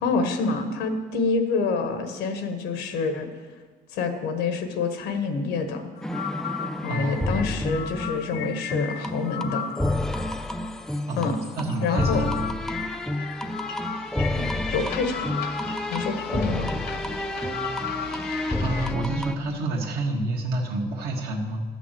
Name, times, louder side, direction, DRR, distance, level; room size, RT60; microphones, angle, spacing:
voice 1, 0.0-3.3 3.9-5.8 6.8-9.6 11.1-11.4 11.8-12.2 14.7-15.4 15.9-16.7, left 4 dB, 90° left, 7 dB, 1.3 m, -27 dB
sound 1, 6.0-18.9, left 8 dB, 70° left, 0.7 m, -36 dB
sound 2, 6.0-19.4, left 1 dB, 5° left, 0.5 m, -30 dB
voice 2, 6.9-7.3 11.1-12.5 18.6-21.6, right 2 dB, 65° right, -1 dB, 1.7 m, -29 dB
12.0 x 6.0 x 7.6 m, 1.5 s
cardioid pair, 110°, 17 cm